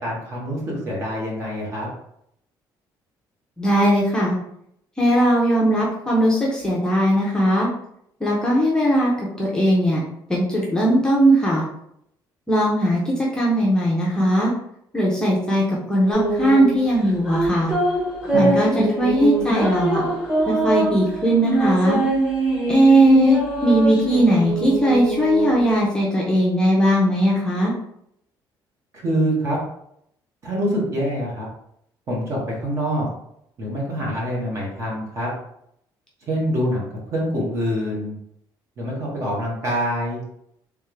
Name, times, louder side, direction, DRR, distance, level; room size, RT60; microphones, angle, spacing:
voice 1, 0.0-1.9 18.3-18.5 28.9-29.6 30.4-31.5 32.1-33.1 33.6-35.3 36.2-38.1 38.8-40.2, equal, 35° right, -3 dB, 1.4 m, -25 dB
voice 2, 3.6-4.4 5.0-7.7 8.2-10.0 10.3-11.6 12.5-14.5 14.9-17.7 18.3-20.0 20.5-22.0 22.7-27.7, equal, 10° left, -4 dB, 0.7 m, -19 dB
sound 1, 16.1-25.9, right 2 dB, 10° right, 1.3 m, -23 dB
3.5 x 3.5 x 3.3 m, 0.73 s
cardioid pair, 175°, 8 cm